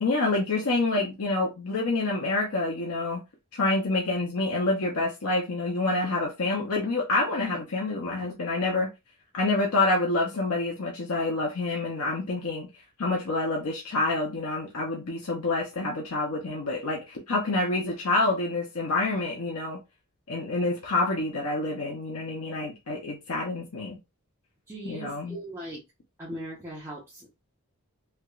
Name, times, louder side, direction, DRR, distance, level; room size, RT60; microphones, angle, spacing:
voice 1, 0.0-3.2 3.5-8.9 9.3-12.7 13.0-19.8 20.3-24.0 24.8-25.4, left 2 dB, 80° left, 0.8 m, -27 dB
voice 2, 24.7-25.8 26.2-27.3, right 1 dB, 10° right, 0.9 m, -39 dB
3.4 x 2.9 x 2.4 m
head